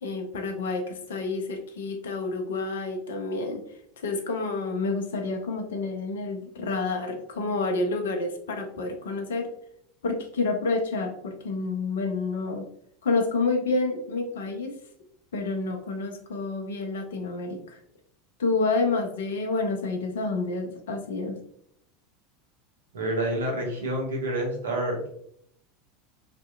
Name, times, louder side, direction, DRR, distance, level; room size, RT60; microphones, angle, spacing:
voice 1, 0.0-3.6 4.0-9.5 10.0-12.6 13.0-14.7 15.3-17.8 18.4-21.3, left 3 dB, 65° left, 4 dB, 0.4 m, -29 dB
voice 2, 22.9-25.1, right 1 dB, 70° right, 1 dB, 0.6 m, -28 dB
2.7 x 2.1 x 2.2 m, 0.69 s
figure-of-eight pair, 80°, 0 cm